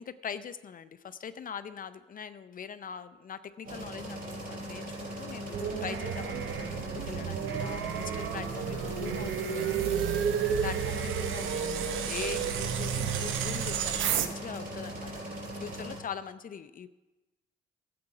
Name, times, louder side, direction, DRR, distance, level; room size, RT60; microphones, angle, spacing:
voice 1, 0.0-9.9 10.6-15.1 15.4-16.9, left 7 dB, 45° left, 12 dB, 0.6 m, -42 dB
sound 1, 3.6-16.0, right 1 dB, 45° right, 4.9 m, -40 dB
sound 2, 5.5-14.3, right 8 dB, 85° right, 0.8 m, -31 dB
13.5 x 7.8 x 4.9 m, 1.1 s
cardioid pair, 90°, 20 cm